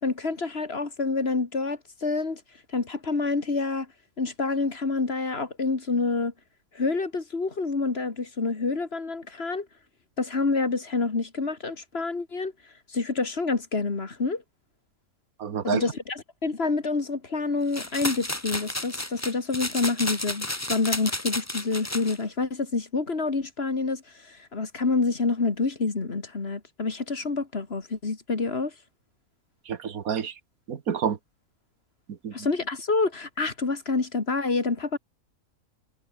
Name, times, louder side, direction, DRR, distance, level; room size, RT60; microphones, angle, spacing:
voice 1, 0.0-2.4 2.7-3.9 4.2-6.3 6.7-9.7 10.2-12.5 12.9-14.4 15.6-28.7 32.3-35.0, left 3 dB, 45° left, 2.4 m, -27 dB
voice 2, 15.4-15.9 29.7-30.4 30.7-31.2 32.1-32.5, right 7 dB, 80° right, 1.8 m, -29 dB
sound 1, 17.7-22.2, left 1 dB, 10° left, 1.8 m, -32 dB
omnidirectional pair, 1.5 m